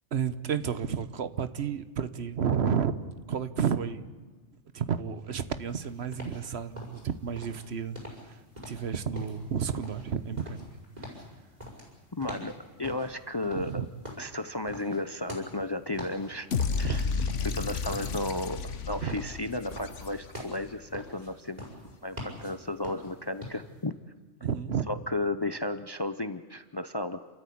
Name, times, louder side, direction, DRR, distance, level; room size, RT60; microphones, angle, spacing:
voice 1, 0.1-2.9 3.3-4.1 4.7-8.0 8.3-8.4 8.7-10.7 13.5-13.9 16.8-17.1 19.0-19.2 24.4-24.9, right 7 dB, 65° right, 11 dB, 1.2 m, -31 dB
sound 1, 5.6-23.8, equal, 35° right, 5.9 m, -44 dB
voice 2, 12.2-12.5 12.8-13.8 14.2-16.5 16.8-17.1 17.4-21.7 22.0-24.0 24.9-27.3, left 2 dB, 25° left, 11 dB, 0.6 m, -33 dB
sound 2, 16.5-20.6, left 5 dB, 80° left, 1.4 m, -32 dB
29.0 x 13.5 x 8.6 m, 1.4 s
omnidirectional pair, 1.2 m